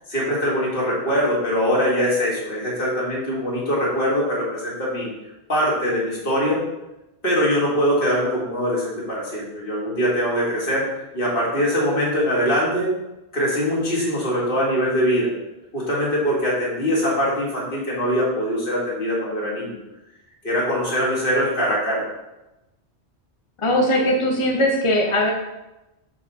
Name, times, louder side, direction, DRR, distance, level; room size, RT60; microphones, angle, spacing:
voice 1, 0.1-5.1 5.5-6.6 7.2-10.8 11.1-12.9 13.3-15.3 15.7-19.8 20.4-22.0, equal, 55° left, -5 dB, 2.3 m, -22 dB
voice 2, 23.6-25.3, left 1 dB, 35° left, 0 dB, 0.7 m, -19 dB
6.9 x 4.8 x 4.2 m, 0.98 s
omnidirectional pair, 1.1 m